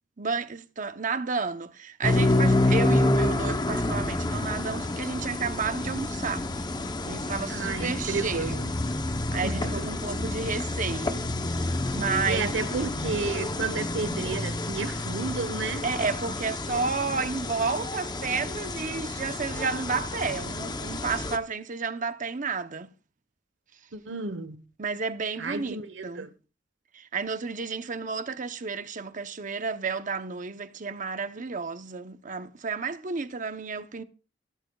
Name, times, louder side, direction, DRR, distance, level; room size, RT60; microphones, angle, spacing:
voice 1, 0.2-6.5 7.0-8.6 9.3-12.5 12.8-13.2 15.8-22.9 24.8-26.3 26.9-34.0, right 4 dB, 45° right, 0.8 m, -32 dB
sound 1, 2.0-21.4, left 2 dB, 25° left, 0.8 m, -29 dB
voice 2, 7.5-8.7 9.4-10.0 12.3-15.9 23.9-24.6 25.4-26.3, right 4 dB, 90° right, 1.1 m, -32 dB
15.5 x 13.5 x 2.3 m
head